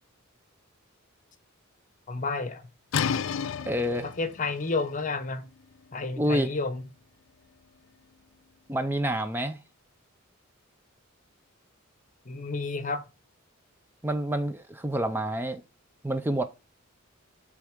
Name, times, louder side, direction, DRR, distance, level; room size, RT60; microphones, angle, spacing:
voice 1, 2.1-2.6 4.0-5.4 5.9-6.8 12.2-13.0, left 3 dB, 40° left, 0.9 m, -31 dB
sound 1, 2.9-8.5, left 7 dB, 65° left, 0.4 m, -35 dB
voice 2, 3.7-4.1 6.2-6.5 8.7-9.6 14.0-15.6 16.0-16.4, right 1 dB, 10° right, 0.5 m, -28 dB
8.1 x 3.6 x 5.0 m
head